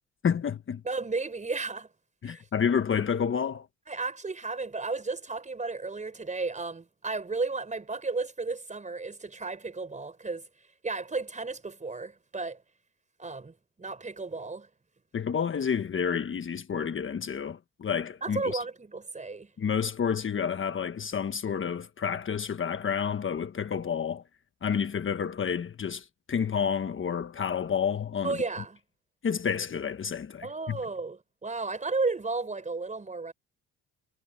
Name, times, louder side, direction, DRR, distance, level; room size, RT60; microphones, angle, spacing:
voice 1, 0.2-0.8 2.2-3.7 15.1-18.6 19.6-24.2 24.6-28.4 29.2-30.8, left 7 dB, 40° left, 1.3 m, -29 dB
voice 2, 0.8-1.9 2.2-2.5 3.9-10.5 10.8-12.6 13.2-14.7 18.2-19.5 28.2-28.8 30.4-33.3, right 3 dB, 25° right, 4.7 m, -33 dB
cardioid pair, 90°, 30 cm